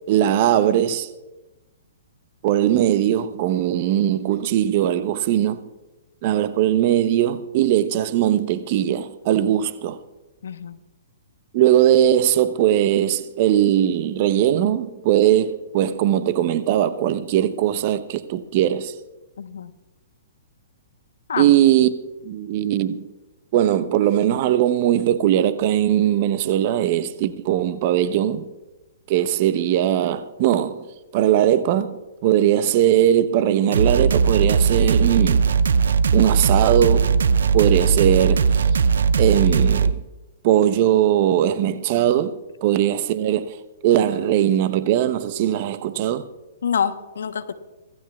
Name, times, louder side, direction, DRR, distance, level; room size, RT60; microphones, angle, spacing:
voice 1, 0.1-1.1 2.4-5.6 6.2-10.0 11.5-18.9 21.4-21.9 22.2-23.1 23.5-28.5 29.1-30.8 31.1-35.4 36.1-37.2 37.5-38.5 39.2-40.0 40.4-43.6 43.8-46.3, right 11 dB, 45° right, 0.9 m, -20 dB
voice 2, 10.4-10.8 19.4-19.7 21.3-21.5 46.6-47.5, left 7 dB, 70° left, 1.1 m, -26 dB
sound 1, 33.7-39.9, right 5 dB, 70° right, 0.6 m, -18 dB
25.0 x 16.5 x 2.4 m
figure-of-eight pair, 120°, 0 cm